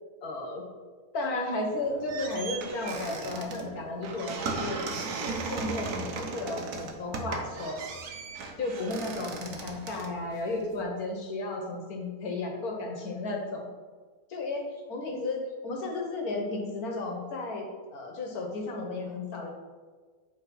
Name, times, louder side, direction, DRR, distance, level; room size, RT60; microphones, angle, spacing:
voice 1, 0.2-0.6 1.1-4.8 5.3-7.8 8.6-13.7 14.3-19.5, left 2 dB, 65° left, 1 dB, 1.6 m, -34 dB
sound 1, 1.7-10.8, right 4 dB, 70° right, 1.4 m, -37 dB
8.3 x 3.8 x 5.4 m, 1.5 s
omnidirectional pair, 1.7 m